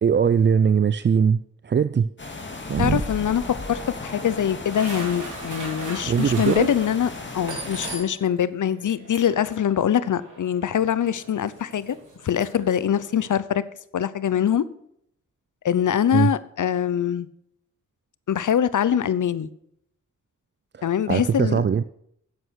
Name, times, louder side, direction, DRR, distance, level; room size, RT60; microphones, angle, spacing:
voice 1, 0.0-2.1 2.7-3.0 6.1-6.7 16.1-16.3 20.8-21.8, right 7 dB, 35° right, 13 dB, 0.4 m, -21 dB
sound 1, 2.2-8.0, left 3 dB, 35° left, 2.1 m, -35 dB
voice 2, 2.8-12.0 12.2-13.6 13.9-14.6 15.6-17.3 18.3-19.5 20.8-21.7, left 9 dB, 70° left, 16 dB, 0.7 m, -23 dB
sound 2, 3.7-8.4 8.6-13.3, right 2 dB, 70° right, 4.0 m, -40 dB
9.5 x 8.0 x 6.4 m, 0.73 s
cardioid pair, 55°, 32 cm